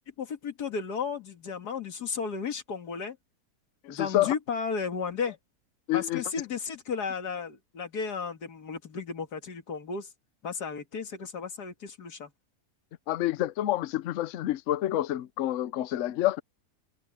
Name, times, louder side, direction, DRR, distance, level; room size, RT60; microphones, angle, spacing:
voice 1, 0.2-3.2 3.9-5.4 5.9-10.1 10.4-12.3, left 5 dB, 90° left, 2.4 m, -34 dB
voice 2, 3.8-4.3 5.9-6.2 13.1-16.4, left 14 dB, 65° left, 0.9 m, -28 dB
omnidirectional pair, 1.7 m